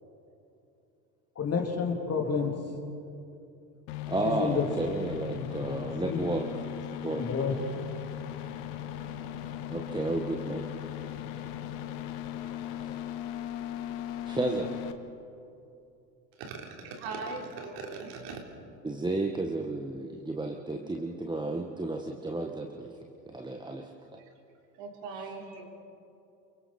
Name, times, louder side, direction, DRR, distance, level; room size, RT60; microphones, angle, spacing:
voice 1, 1.4-2.6 4.2-4.6 5.2-6.5 7.1-7.6, left 5 dB, 30° left, 2 dB, 3.0 m, -31 dB
sound 1, 3.9-14.9, left 11 dB, 55° left, 1.5 m, -38 dB
voice 2, 4.1-6.4 7.0-7.6 9.7-10.6 11.1-11.2 14.3-14.7 18.8-22.9 23.3-23.9, right 2 dB, 10° right, 2 dB, 1.3 m, -32 dB
voice 3, 16.8-18.4 24.8-25.6, right 4 dB, 55° right, 1 dB, 3.6 m, -39 dB
28.5 x 24.0 x 4.3 m, 2.8 s
hypercardioid pair, 80°, 50 cm